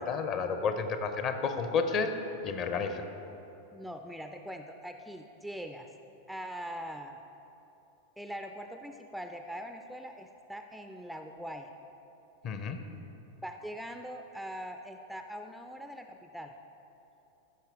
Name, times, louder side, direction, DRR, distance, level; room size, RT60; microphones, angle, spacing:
voice 1, 0.0-2.1 2.4-3.1 12.4-12.8, left 5 dB, 35° left, 8 dB, 0.6 m, -31 dB
voice 2, 3.7-5.9 6.3-7.2 8.2-11.7 13.4-16.5, equal, ahead, 5 dB, 0.3 m, -42 dB
14.0 x 5.8 x 3.5 m, 2.9 s
figure-of-eight pair, 90°, 0 cm